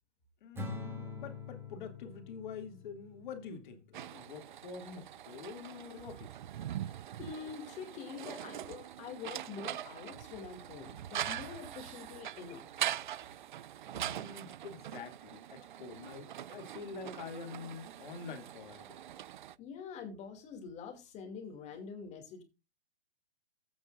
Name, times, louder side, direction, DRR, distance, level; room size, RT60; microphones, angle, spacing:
voice 1, 0.4-6.4 14.0-19.0, left 5 dB, 45° left, 2.5 m, -46 dB
Acoustic guitar / Strum, 0.6-3.9, left 3 dB, 5° right, 2.4 m, -44 dB
sound 1, 3.9-19.5, right 11 dB, 50° right, 0.5 m, -42 dB
voice 2, 7.2-13.0 19.6-22.4, left 6 dB, 20° left, 2.5 m, -46 dB
15.5 x 8.7 x 2.5 m
hypercardioid pair, 140°, 33 cm